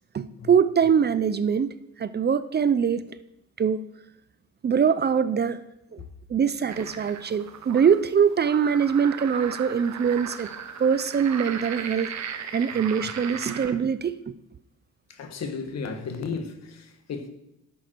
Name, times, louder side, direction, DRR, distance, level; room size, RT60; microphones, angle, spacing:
voice 1, 0.1-3.1 3.6-3.8 4.6-5.6 5.9-6.0 6.3-10.5 10.8-12.1 12.5-14.3, right 7 dB, 35° right, 0.5 m, -23 dB
sound 1, 6.7-13.7, right 7 dB, 65° right, 1.1 m, -37 dB
voice 2, 15.1-17.3, left 5 dB, 60° left, 1.5 m, -34 dB
11.0 x 7.3 x 4.6 m
cardioid pair, 90°, 30 cm